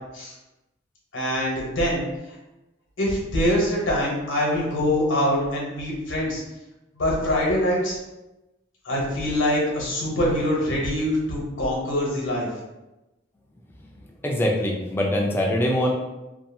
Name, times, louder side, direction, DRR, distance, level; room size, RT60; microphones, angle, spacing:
voice 1, 1.1-2.1 3.0-6.4 7.0-8.0 8.8-12.5, left 1 dB, 80° left, -3 dB, 0.9 m, -24 dB
voice 2, 14.2-15.9, left 1 dB, 10° left, -1 dB, 0.3 m, -23 dB
2.6 x 2.3 x 2.6 m, 1.0 s
head